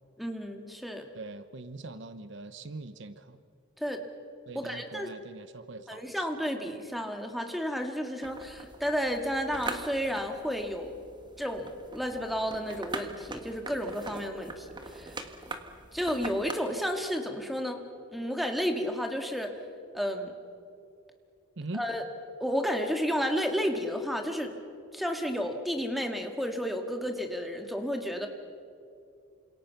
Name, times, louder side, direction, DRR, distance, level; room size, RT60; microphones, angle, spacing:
voice 1, 0.2-1.1 3.8-4.0 4.5-5.1 5.9-10.9 11.4-15.2 15.9-17.8 18.1-19.5 19.9-20.4 21.7-22.0 22.4-24.5 24.9-28.3, equal, ahead, 4 dB, 2.0 m, -32 dB
voice 2, 1.1-3.4 4.5-6.3 21.6-21.9, right 2 dB, 60° right, 11 dB, 0.9 m, -42 dB
sound 1, 8.2-16.5, right 2 dB, 20° right, 1.6 m, -42 dB
28.5 x 27.0 x 6.0 m, 2.5 s
head